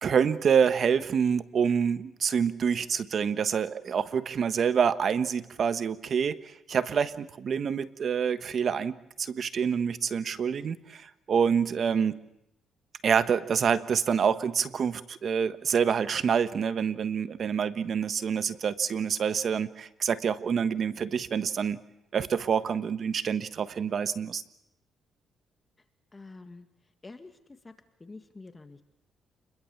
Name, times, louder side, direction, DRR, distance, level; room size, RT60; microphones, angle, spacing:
voice 1, 0.0-12.2 13.0-21.8 22.1-24.4, right 7 dB, 55° right, 13 dB, 1.3 m, -27 dB
voice 2, 26.1-26.7 27.0-27.3 27.6-27.7 28.0-28.8, left 3 dB, 25° left, 8 dB, 2.0 m, -46 dB
28.5 x 21.5 x 7.3 m, 0.81 s
cardioid pair, 90°, 0 cm